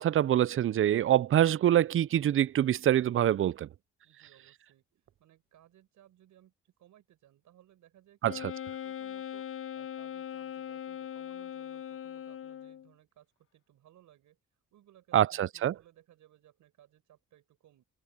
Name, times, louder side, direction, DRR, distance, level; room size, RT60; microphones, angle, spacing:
voice 1, 0.0-3.7 8.2-8.3 15.1-15.7, right 11 dB, 45° right, 0.5 m, -25 dB
voice 2, 4.0-17.8, right 12 dB, 80° right, 5.7 m, -62 dB
Wind instrument woodwind instrument, 8.2-12.9, left 9 dB, 45° left, 0.7 m, -40 dB
open air
cardioid pair, 90°, 30 cm